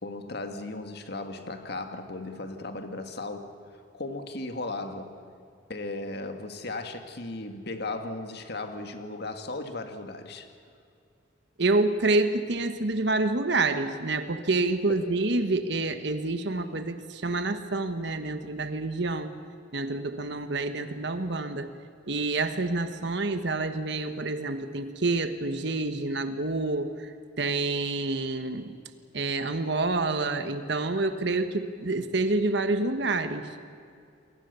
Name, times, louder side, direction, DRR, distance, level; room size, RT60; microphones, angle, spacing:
voice 1, 0.0-5.2 5.7-10.5 14.9-15.1, left 2 dB, 60° left, 6 dB, 2.0 m, -36 dB
voice 2, 11.6-19.3 19.7-21.7 22.1-27.1 27.4-28.8 29.1-33.5, right 2 dB, 65° right, 9 dB, 1.3 m, -28 dB
29.0 x 22.5 x 6.9 m, 2.4 s
head